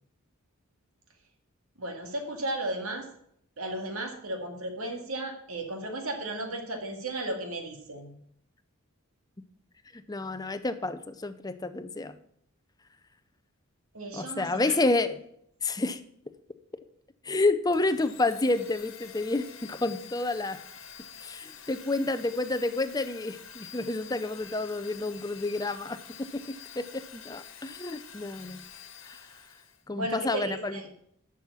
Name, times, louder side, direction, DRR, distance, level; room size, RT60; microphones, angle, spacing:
voice 1, 1.8-3.1 3.6-8.2 13.9-14.8 29.9-30.9, right 1 dB, 85° right, 3 dB, 2.2 m, -35 dB
voice 2, 9.9-12.2 14.1-15.2 15.6-16.0 17.2-20.6 21.2-26.0 26.3-28.6 29.0-29.2 29.9-30.8, left 2 dB, 15° left, 10 dB, 0.6 m, -29 dB
Domestic sounds home sounds, 17.7-29.8, left 7 dB, 65° left, 1.5 m, -48 dB
11.0 x 6.4 x 5.6 m, 0.70 s
head